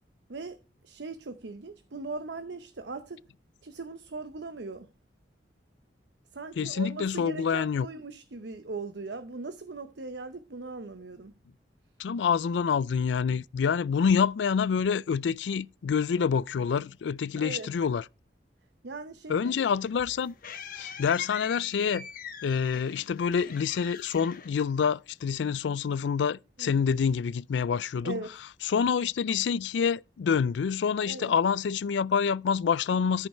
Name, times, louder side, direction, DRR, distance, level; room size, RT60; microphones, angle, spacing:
voice 1, 0.8-3.2 3.6-4.9 6.3-11.3 17.3-17.7 18.8-19.5 26.6-26.7 28.0-28.3 31.1-31.3, right 3 dB, 75° right, 0.8 m, -39 dB
voice 2, 6.6-7.9 12.0-18.0 19.3-20.4 20.8-22.1 22.4-28.2 28.6-33.3, left 6 dB, 85° left, 0.4 m, -27 dB
sound 1, 19.5-25.3, left 8 dB, 50° left, 1.0 m, -43 dB
13.5 x 5.5 x 4.3 m
head